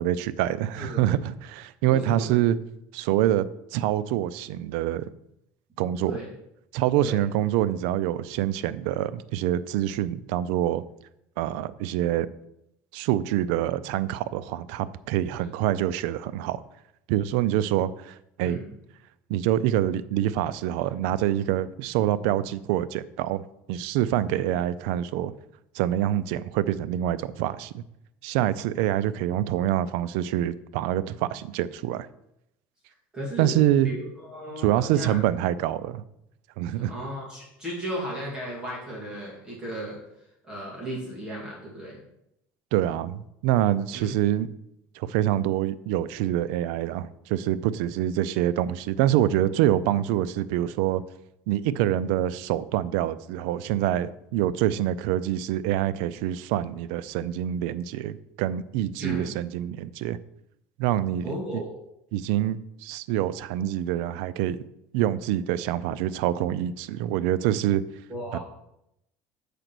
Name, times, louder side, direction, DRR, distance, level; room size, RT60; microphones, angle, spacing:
voice 1, 0.0-2.6 2.9-3.5 3.7-5.1 5.8-6.1 6.7-10.8 11.4-12.3 12.9-16.6 17.1-18.6 19.3-25.3 25.7-27.8 28.2-32.1 33.4-33.9 34.6-36.0 36.6-36.9 42.7-44.5 44.9-51.0 51.5-60.2 60.8-61.2 61.5-61.6 62.1-64.6 64.9-67.8 68.3-68.4, right 12 dB, 75° right, 16 dB, 0.4 m, -26 dB
voice 2, 1.9-2.4 6.1-6.3 7.0-7.2 15.4-15.5 18.4-18.7 24.3-24.5 33.1-35.2 36.7-40.0 40.4-42.0 43.9-44.1 59.0-59.3 61.2-61.7 68.1-68.4, equal, 10° right, -5 dB, 2.4 m, -35 dB
6.7 x 4.9 x 6.0 m, 0.82 s
cardioid pair, 155°, 6 cm